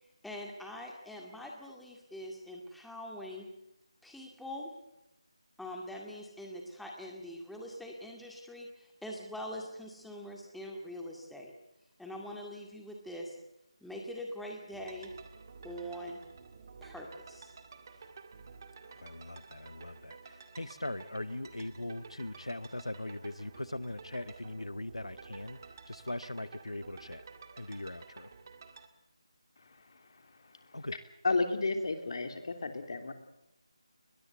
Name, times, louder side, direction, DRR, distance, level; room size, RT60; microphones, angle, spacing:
voice 1, 0.0-3.5 4.0-4.7 5.6-11.5 12.0-13.4 13.8-15.1 15.6-16.2 16.8-17.5, equal, ahead, 0 dB, 2.0 m, -43 dB
sound 1, 14.7-28.9, right 5 dB, 35° right, 2.0 m, -52 dB
voice 2, 18.8-25.6 25.9-27.2 27.6-28.3 30.7-31.0, left 1 dB, 90° left, 16 dB, 1.1 m, -40 dB
voice 3, 29.7-30.2 30.5-30.8 31.2-33.1, left 3 dB, 55° left, 7 dB, 3.2 m, -33 dB
22.0 x 21.0 x 7.9 m, 0.85 s
figure-of-eight pair, 165°, 3 cm